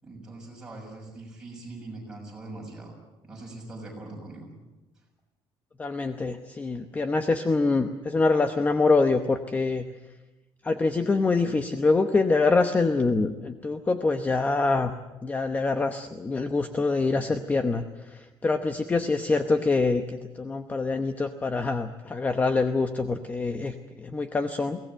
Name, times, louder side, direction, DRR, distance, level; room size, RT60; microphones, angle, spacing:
voice 1, 0.0-3.0 3.2-4.5, right 2 dB, 10° right, -2 dB, 6.7 m, -42 dB
voice 2, 5.8-9.8 10.6-14.9 15.2-24.8, left 3 dB, 15° left, 8 dB, 0.9 m, -25 dB
23.0 x 18.0 x 9.0 m, 1.1 s
cardioid pair, 175°, 9 cm